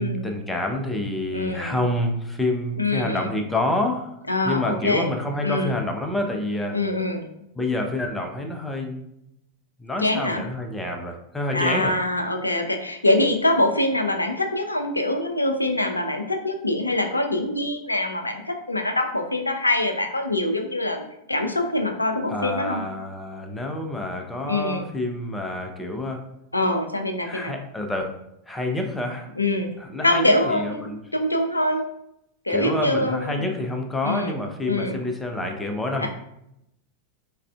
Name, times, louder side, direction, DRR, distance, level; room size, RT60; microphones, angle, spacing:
voice 1, 0.0-4.2 4.4-6.8 7.6-9.0 9.8-11.9 22.3-26.2 27.2-28.1 28.5-29.3 29.8-31.0 32.5-36.1, left 1 dB, 10° left, 3 dB, 0.5 m, -28 dB
voice 2, 1.3-1.8 2.8-3.3 4.3-5.1 5.4-5.7 6.7-7.3 10.0-10.4 11.5-22.8 24.4-24.9 26.5-27.5 29.4-29.7 30.0-31.8 32.4-33.5 34.0-34.4 34.6-35.0 36.0-36.1, left 1 dB, 85° left, 5 dB, 0.4 m, -24 dB
3.6 x 3.2 x 2.2 m, 0.81 s
figure-of-eight pair, 90°, 0 cm